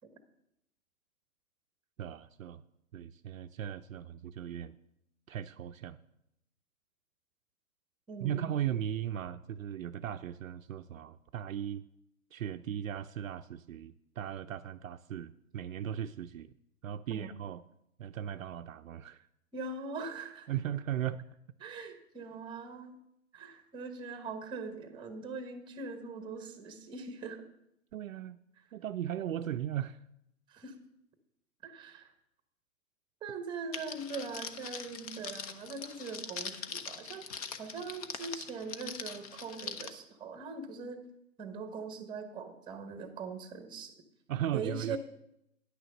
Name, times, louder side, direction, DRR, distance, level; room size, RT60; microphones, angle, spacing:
voice 1, 2.0-2.6 2.9-4.8 5.3-6.0 8.2-11.8 12.3-16.5 16.8-17.6 18.0-19.3 20.5-21.2 27.9-28.4 28.7-30.0 44.3-45.0, right 10 dB, 65° right, 10 dB, 0.5 m, -37 dB
voice 2, 8.1-8.5 17.1-17.3 19.5-20.5 21.6-23.0 23.3-27.4 30.5-30.7 31.6-32.1 33.2-37.3 37.6-41.0 41.4-43.9 44.5-45.0, right 4 dB, 10° right, 8 dB, 1.0 m, -41 dB
Crackle, 33.7-39.9, left 6 dB, 25° left, 0.5 m, -42 dB
9.8 x 6.3 x 6.4 m, 0.82 s
figure-of-eight pair, 120°, 44 cm